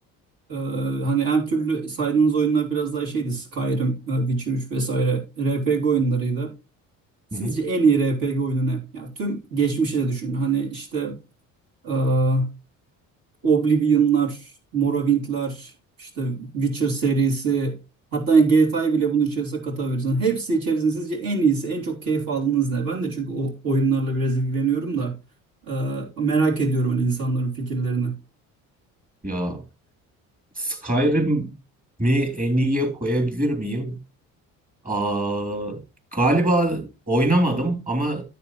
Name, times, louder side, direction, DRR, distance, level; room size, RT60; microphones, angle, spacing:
voice 1, 0.5-6.5 7.4-11.2 11.8-12.5 13.4-15.7 16.0-17.8 18.1-25.1 25.7-28.1, right 4 dB, 65° right, 3.3 m, -23 dB
voice 2, 29.2-29.6 30.6-31.5 32.0-34.0 34.8-35.8 36.1-38.2, right 1 dB, 25° right, 3.5 m, -23 dB
10.0 x 8.3 x 3.1 m
supercardioid pair, 75°, 37 cm